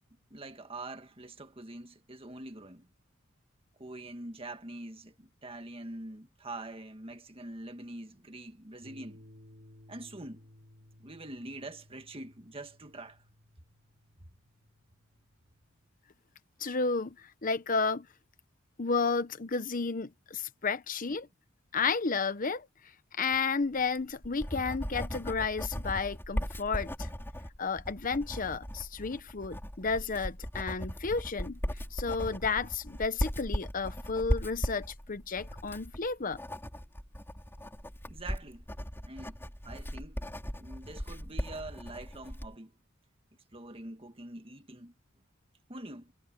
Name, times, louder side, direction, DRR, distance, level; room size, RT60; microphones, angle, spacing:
voice 1, 0.3-2.9 3.8-9.2 9.9-10.5 11.0-13.2 38.1-38.7 39.0-40.2 40.5-42.7 43.5-44.9 45.7-46.1, right 2 dB, 25° right, 1.7 m, -44 dB
sound 1, 8.8-15.9, left 1 dB, 55° right, 3.9 m, -58 dB
voice 2, 16.6-18.1 18.8-21.3 21.7-22.7 23.2-27.1 27.6-31.6 31.9-36.4, left 4 dB, 40° left, 0.9 m, -32 dB
Writing, 23.9-42.5, equal, 10° left, 4.5 m, -38 dB
head